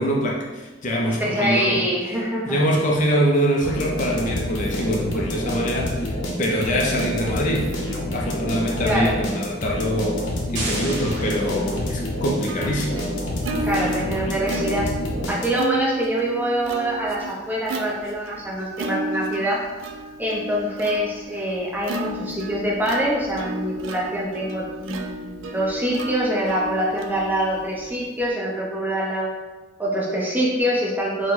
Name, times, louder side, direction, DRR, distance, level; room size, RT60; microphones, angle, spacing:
voice 1, 0.0-1.8 2.5-7.7 8.1-13.1, equal, 40° left, -2 dB, 0.4 m, -24 dB
voice 2, 1.2-2.5 8.8-9.2 13.6-14.9 15.3-19.6 20.2-29.3 29.8-31.3, equal, 10° right, -5 dB, 0.7 m, -24 dB
sound 1, 3.6-15.8, left 1 dB, 70° left, 0.7 m, -28 dB
sound 2, 10.6-12.4, right 2 dB, 55° right, 1.1 m, -33 dB
Plucked string instrument, 11.5-28.3, right 2 dB, 80° right, 0.4 m, -33 dB
4.5 x 2.1 x 3.9 m, 1.2 s
head